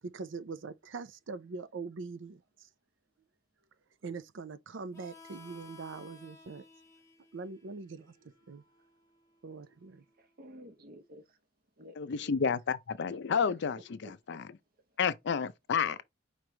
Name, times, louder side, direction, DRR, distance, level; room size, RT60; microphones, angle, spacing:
voice 1, 0.0-2.7 4.0-6.7 7.3-8.6 9.4-10.0, right 4 dB, 65° right, 0.5 m, -43 dB
Harmonica, 4.9-10.2, left 3 dB, 15° left, 1.0 m, -57 dB
voice 2, 10.2-11.4 11.8-12.4 13.1-13.2 13.5-13.6 14.0-14.4, equal, 50° right, 0.9 m, -52 dB
voice 3, 12.0-13.8 14.3-14.4 15.0-16.0, left 6 dB, 60° left, 0.5 m, -30 dB
5.0 x 3.1 x 3.3 m
head